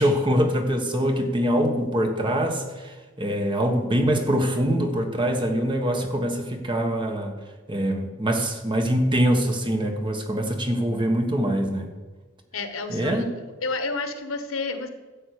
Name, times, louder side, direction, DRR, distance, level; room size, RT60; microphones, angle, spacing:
voice 1, 0.0-7.4 7.7-11.9 12.9-13.2, equal, 25° right, 5 dB, 1.4 m, -24 dB
voice 2, 12.5-13.2 13.6-14.9, left 3 dB, 80° left, 9 dB, 1.2 m, -30 dB
13.0 x 7.6 x 6.5 m, 1.3 s
head